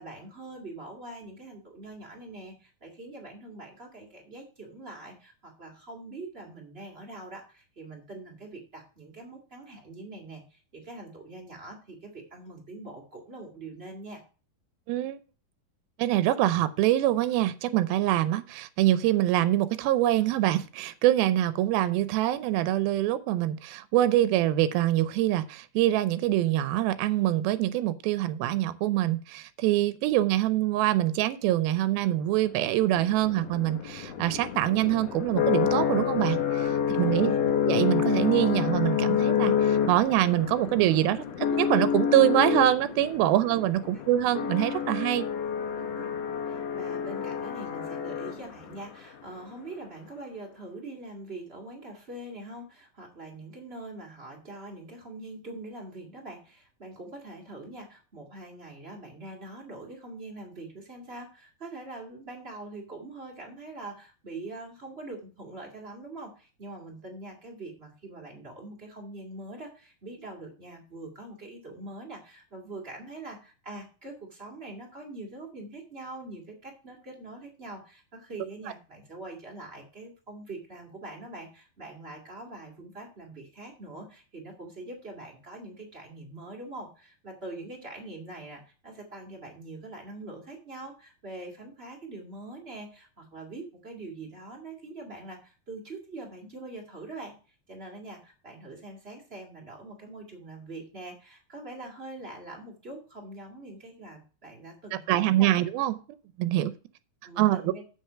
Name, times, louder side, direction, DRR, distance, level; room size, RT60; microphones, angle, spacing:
voice 1, 0.0-14.2 36.9-37.6 45.8-46.1 46.5-97.3 97.7-105.5 107.2-107.8, right 2 dB, 25° right, 0 dB, 1.4 m, -43 dB
voice 2, 14.9-15.2 16.0-45.3 105.1-106.0 106.4-106.7 107.4-107.7, right 14 dB, 90° right, 13 dB, 2.5 m, -25 dB
sound 1, 32.6-48.8, left 8 dB, 60° left, 1.8 m, -28 dB
7.9 x 6.5 x 5.6 m, 0.36 s
omnidirectional pair, 4.2 m